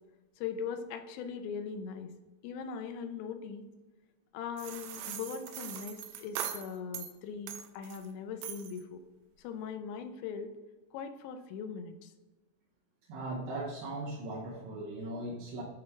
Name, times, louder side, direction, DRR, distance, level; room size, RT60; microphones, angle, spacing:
voice 1, 0.4-2.1 2.4-3.6 4.3-9.0 9.4-10.5 10.9-12.1, left 6 dB, 90° left, 7 dB, 2.9 m, -40 dB
sound 1, 4.6-7.1 7.5-8.1 8.4-8.8, right 9 dB, 90° right, 2.2 m, -41 dB
voice 2, 13.1-15.6, right 2 dB, 75° right, -5 dB, 2.3 m, -38 dB
8.7 x 3.3 x 3.5 m, 1.2 s
omnidirectional pair, 5.0 m